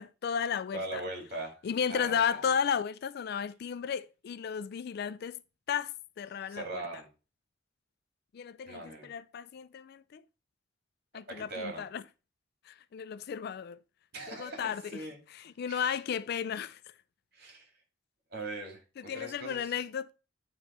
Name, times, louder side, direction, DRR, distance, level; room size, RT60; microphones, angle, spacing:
voice 1, 0.0-1.0 1.6-5.4 5.7-6.8 8.3-10.2 11.1-12.0 12.7-13.8 14.3-15.0 15.3-16.8 19.0-20.1, left 7 dB, 60° left, 0.3 m, -34 dB
voice 2, 0.7-1.6 1.9-2.4 6.5-7.1 8.7-9.1 11.3-11.9 14.1-15.2 15.7-16.0 17.3-17.7 18.3-19.7, right 2 dB, 60° right, 2.1 m, -40 dB
8.9 x 3.2 x 4.2 m
head